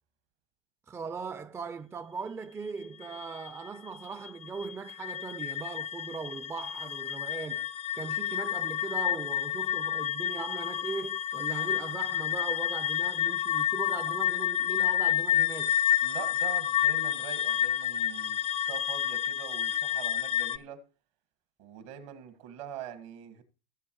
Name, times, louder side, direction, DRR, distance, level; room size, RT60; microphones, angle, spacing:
voice 1, 0.9-7.7 8.0-15.7, right 5 dB, 15° right, 0.5 m, -39 dB
sound 1, 2.7-20.6, left 11 dB, 40° left, 0.6 m, -30 dB
voice 2, 16.0-20.8 21.6-23.4, right 10 dB, 70° right, 1.9 m, -44 dB
17.0 x 7.6 x 3.1 m
hypercardioid pair, 100°, 16 cm